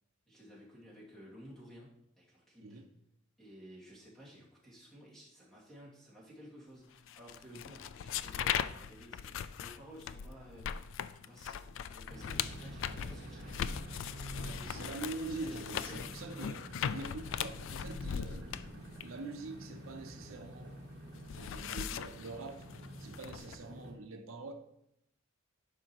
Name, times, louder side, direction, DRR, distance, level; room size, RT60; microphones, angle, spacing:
voice 1, 0.3-2.8 3.4-10.8 11.1-13.9 14.3-16.2 23.5-23.6, equal, ahead, -7 dB, 2.3 m, -54 dB
sound 1, 7.1-20.6 20.9-23.6, left 8 dB, 65° left, 0.3 m, -40 dB
sound 2, 12.1-23.9, right 1 dB, 55° right, 1.5 m, -49 dB
voice 2, 14.4-20.8 21.0-22.6 23.0-24.5, right 3 dB, 80° right, 6 dB, 0.7 m, -44 dB
11.5 x 5.4 x 3.0 m, 0.78 s
head